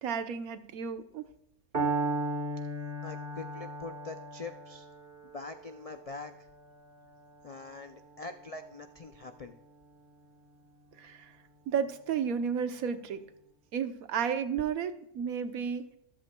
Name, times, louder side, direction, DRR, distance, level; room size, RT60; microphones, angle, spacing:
voice 1, 0.0-1.3 11.0-11.3 11.7-13.2 13.7-15.8, right 7 dB, 80° right, 10 dB, 1.3 m, -32 dB
Piano, 1.7-9.7, right 2 dB, 40° right, 1.9 m, -37 dB
voice 2, 3.0-4.9 5.3-6.5 7.4-9.5, left 3 dB, 70° left, 8 dB, 0.3 m, -43 dB
14.0 x 12.5 x 2.3 m, 0.78 s
omnidirectional pair, 1.5 m